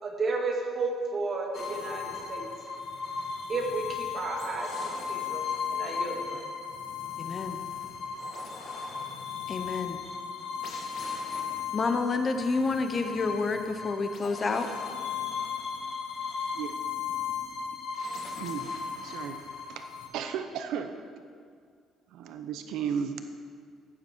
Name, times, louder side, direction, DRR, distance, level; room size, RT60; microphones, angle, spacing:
voice 1, 0.0-2.4 3.5-5.4 5.7-6.4, right 3 dB, 30° right, 1 dB, 1.9 m, -32 dB
sound 1, 1.5-20.1, left 6 dB, 50° left, 1.8 m, -36 dB
voice 2, 7.2-7.6 9.5-10.0 11.7-14.7, left 3 dB, 25° left, 7 dB, 0.7 m, -29 dB
voice 3, 18.4-18.7 19.0-19.4 19.7-19.8 20.1-20.9 22.1-23.2, right 7 dB, 75° right, 7 dB, 0.8 m, -34 dB
15.0 x 10.0 x 4.5 m, 2.1 s
cardioid pair, 155°, 0 cm